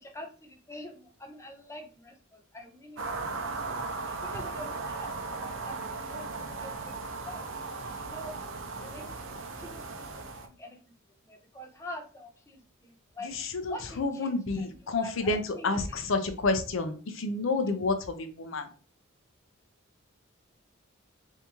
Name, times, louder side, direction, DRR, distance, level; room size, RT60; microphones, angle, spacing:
voice 1, 0.0-3.8 4.1-8.3 8.8-9.2 9.6-10.9 11.3-13.4 13.7-15.7, left 1 dB, 15° left, 3 dB, 0.6 m, -46 dB
sound 1, 3.0-10.5, right 3 dB, 70° right, 0.6 m, -37 dB
voice 2, 13.2-18.7, left 3 dB, 70° left, 8 dB, 0.6 m, -30 dB
2.9 x 2.7 x 3.5 m, 0.38 s
head